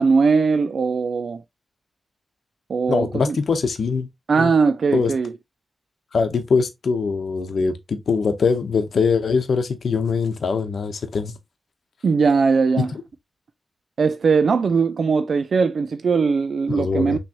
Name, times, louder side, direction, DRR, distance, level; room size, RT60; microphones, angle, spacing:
voice 1, 0.0-1.4 2.7-3.4 4.3-5.3 12.0-12.9 14.0-17.2, right 5 dB, 65° right, 0.3 m, -19 dB
voice 2, 2.9-4.1 4.4-4.5 4.9-5.1 6.1-11.3 12.8-12.9 16.7-17.2, left 5 dB, 70° left, 0.8 m, -22 dB
6.0 x 3.1 x 2.8 m
wide cardioid pair, 165°, 0 cm